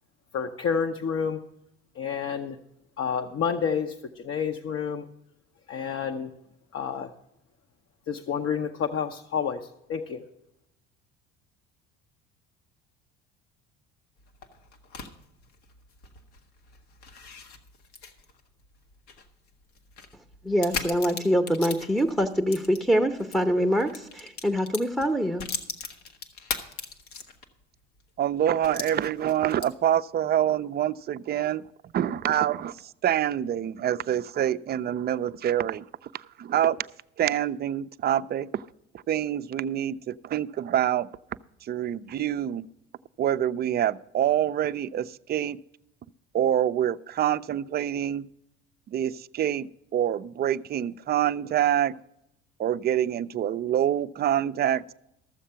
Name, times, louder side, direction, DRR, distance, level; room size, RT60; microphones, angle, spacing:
voice 1, 0.3-1.4 2.0-2.6 3.0-5.1 5.7-6.3 6.7-7.1 8.1-9.6 9.9-10.2, left 7 dB, 45° left, 4 dB, 0.8 m, -29 dB
sound 1, 14.2-23.4 23.7-27.6 28.0-28.1 28.6-30.0, left 5 dB, 80° left, 1.4 m, -39 dB
voice 2, 20.4-25.5, equal, ahead, 2 dB, 0.8 m, -24 dB
voice 3, 28.2-31.6 31.9-35.8 36.1-36.8 37.2-38.6 39.1-41.1 41.6-42.7 43.2-45.6 46.3-48.3 48.9-51.9 52.6-54.9, right 10 dB, 30° right, 13 dB, 0.4 m, -26 dB
13.5 x 7.2 x 5.6 m, 0.83 s
hypercardioid pair, 75°, 32 cm